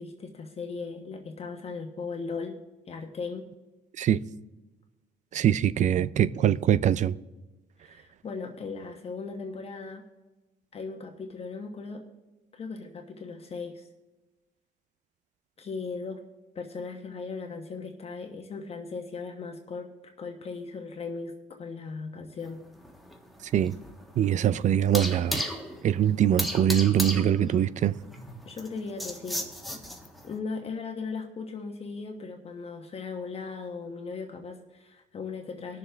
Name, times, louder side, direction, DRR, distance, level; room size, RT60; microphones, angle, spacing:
voice 1, 0.0-2.6 2.9-3.5 7.8-10.0 10.7-12.0 12.5-13.9 15.6-16.2 16.5-19.9 20.2-22.6 28.4-29.5 30.2-35.8, left 4 dB, 35° left, 1.1 m, -37 dB
voice 2, 5.3-7.1 23.4-23.8 24.2-25.5 25.8-28.0, right 10 dB, 45° right, 0.4 m, -23 dB
sound 1, 22.5-30.3, equal, ahead, 1.4 m, -36 dB
20.5 x 6.8 x 3.4 m
cardioid pair, 110°, 17 cm